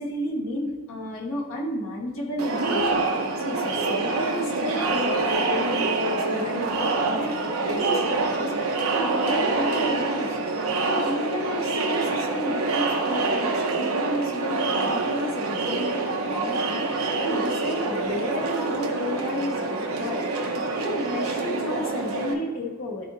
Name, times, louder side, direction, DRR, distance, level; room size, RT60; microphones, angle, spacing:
voice 1, 0.0-10.4 10.8-20.3 20.7-23.1, left 1 dB, 65° left, -3 dB, 1.6 m, -32 dB
Crowd, 2.4-22.3, right 3 dB, 85° right, 1.0 m, -26 dB
12.0 x 4.1 x 2.8 m, 1.4 s
head